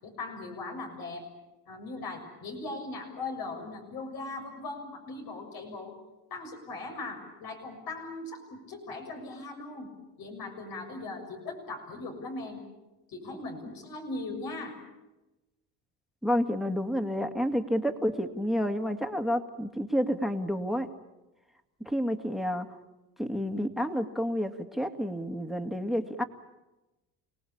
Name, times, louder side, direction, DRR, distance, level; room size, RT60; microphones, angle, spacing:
voice 1, 0.0-1.2 1.7-5.9 6.3-9.9 10.2-12.6 13.1-14.8, left 3 dB, 70° left, 2 dB, 6.8 m, -39 dB
voice 2, 16.2-20.9 21.8-22.7 23.2-26.2, equal, ahead, 5 dB, 2.0 m, -29 dB
29.5 x 18.5 x 8.7 m, 1.0 s
cardioid pair, 95°, 36 cm